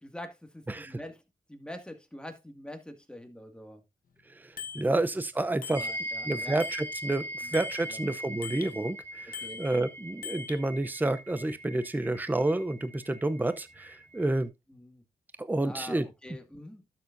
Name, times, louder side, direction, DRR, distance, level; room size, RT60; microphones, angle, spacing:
voice 1, 0.0-1.2 1.5-3.8 4.7-4.8 5.3-6.6 7.4-7.5 7.9-8.0 9.4-9.7 14.7-15.0 15.6-16.8, left 1 dB, 5° left, 2.1 m, -45 dB
voice 2, 0.7-1.0 4.7-5.9 6.2-14.5 15.4-16.1, right 2 dB, 10° right, 0.7 m, -29 dB
Bicycle bell, 4.6-4.9 5.6-6.3 6.6-8.8 9.3-10.6, left 6 dB, 65° left, 1.1 m, -43 dB
sound 1, 5.7-14.4, equal, 35° right, 4.1 m, -41 dB
12.0 x 7.2 x 2.6 m
cardioid pair, 75°, 16 cm